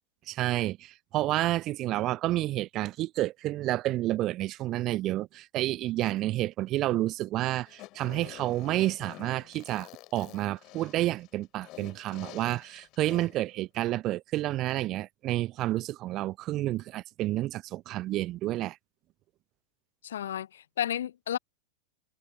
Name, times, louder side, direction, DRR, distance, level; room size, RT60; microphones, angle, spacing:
voice 1, 0.3-18.8, right 15 dB, 35° right, 0.5 m, -30 dB
Fart, 7.7-13.5, left 20 dB, 40° left, 3.1 m, -48 dB
voice 2, 20.0-21.4, left 10 dB, 60° left, 0.4 m, -32 dB
figure-of-eight pair, 90°, 0 cm